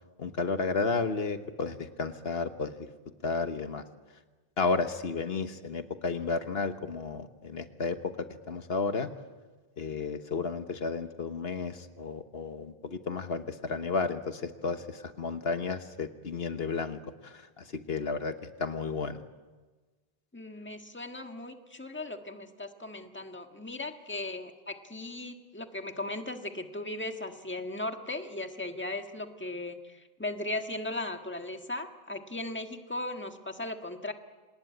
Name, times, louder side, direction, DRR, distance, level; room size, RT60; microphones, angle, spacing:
voice 1, 0.2-2.9 3.2-3.8 4.6-9.1 9.8-18.3 18.6-19.2, left 4 dB, 75° left, 9 dB, 1.5 m, -32 dB
voice 2, 20.3-34.1, left 2 dB, 10° left, 5 dB, 1.6 m, -37 dB
26.5 x 19.5 x 9.7 m, 1.3 s
omnidirectional pair, 1.0 m